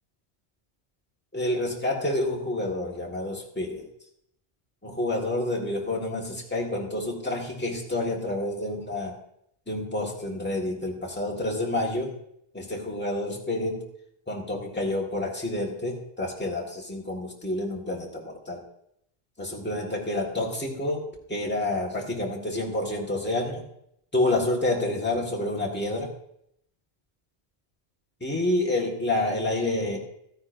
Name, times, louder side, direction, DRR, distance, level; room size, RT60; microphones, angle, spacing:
voice 1, 1.3-3.9 4.8-9.2 9.7-12.2 12.5-13.9 14.3-18.6 19.4-21.0 21.3-23.7 24.1-26.1 28.2-30.0, left 1 dB, 10° left, -2 dB, 1.7 m, -28 dB
14.5 x 9.5 x 2.6 m, 0.74 s
omnidirectional pair, 1.1 m